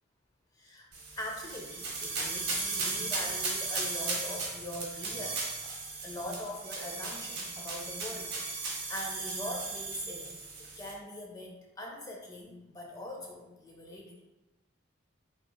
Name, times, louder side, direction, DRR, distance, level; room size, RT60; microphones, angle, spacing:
voice 1, 0.5-0.9 1.2-5.8 6.0-14.2, left 1 dB, 20° left, -1 dB, 0.5 m, -42 dB
sound 1, 0.9-10.9, right 3 dB, 55° right, 1.0 m, -36 dB
3.6 x 3.1 x 2.2 m, 1.0 s
head